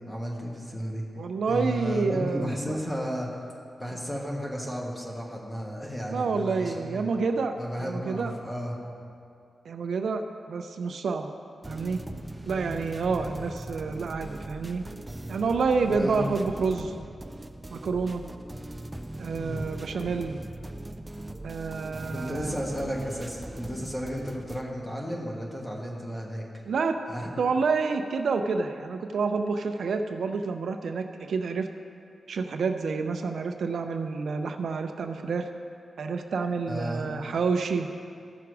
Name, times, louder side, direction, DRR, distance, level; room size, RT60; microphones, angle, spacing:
voice 1, 0.1-1.1 1.5-3.4 3.8-7.1 7.6-8.8 13.1-13.3 15.9-16.4 19.4-19.7 22.1-26.6 27.1-27.3 36.7-37.2, equal, 10° left, -2 dB, 1.4 m, -33 dB
voice 2, 1.2-2.8 6.1-8.3 9.6-11.3 11.7-12.0 12.5-14.8 15.3-16.9 17.7-18.2 19.2-20.4 21.4-22.6 26.7-27.0 27.4-31.7 32.3-35.5 36.0-37.9, right 4 dB, 70° right, 6 dB, 0.5 m, -28 dB
sound 1, 11.6-24.6, right 1 dB, 15° right, 0.3 m, -40 dB
15.0 x 6.0 x 4.7 m, 2.4 s
wide cardioid pair, 165°, 0 cm